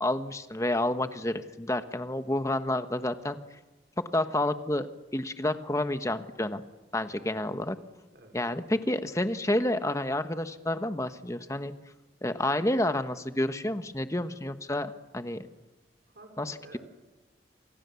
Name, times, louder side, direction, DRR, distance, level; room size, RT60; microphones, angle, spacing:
voice 1, 0.0-3.4 4.1-4.9 5.1-6.6 6.9-7.8 8.3-11.7 12.2-15.5 16.4-16.8, left 1 dB, 20° left, 9 dB, 1.3 m, -29 dB
voice 2, 8.1-9.1 15.4-15.6 16.1-16.8, right 2 dB, 75° right, 2 dB, 4.3 m, -53 dB
29.0 x 25.5 x 7.1 m, 1.1 s
head